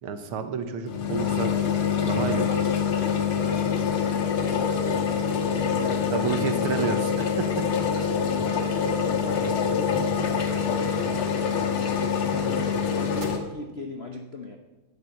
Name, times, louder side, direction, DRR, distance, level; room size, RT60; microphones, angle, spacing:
voice 1, 0.0-1.5 2.0-2.6 6.1-7.5, right 6 dB, 75° right, 8 dB, 1.9 m, -30 dB
sound 1, 0.9-13.4, left 6 dB, 75° left, 2.1 m, -25 dB
voice 2, 3.8-6.3 7.9-11.4 12.5-14.6, left 3 dB, 55° left, 2 dB, 0.7 m, -38 dB
sound 2, 8.2-13.2, right 3 dB, 60° right, 2.1 m, -45 dB
10.5 x 9.4 x 7.0 m, 1.1 s
omnidirectional pair, 2.4 m